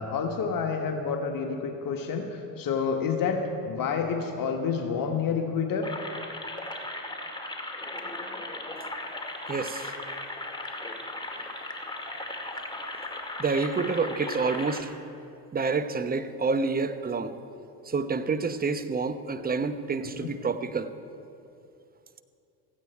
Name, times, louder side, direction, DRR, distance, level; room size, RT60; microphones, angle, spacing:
voice 1, 0.0-5.9 20.0-20.3, left 5 dB, 45° left, 3 dB, 1.5 m, -29 dB
sound 1, 5.8-14.8, left 2 dB, 10° left, 2.4 m, -37 dB
voice 2, 9.5-9.9 13.4-14.9 15.5-17.4 17.8-20.9, right 4 dB, 20° right, 10 dB, 1.0 m, -28 dB
16.5 x 15.5 x 4.6 m, 2.7 s
figure-of-eight pair, 60°, 48 cm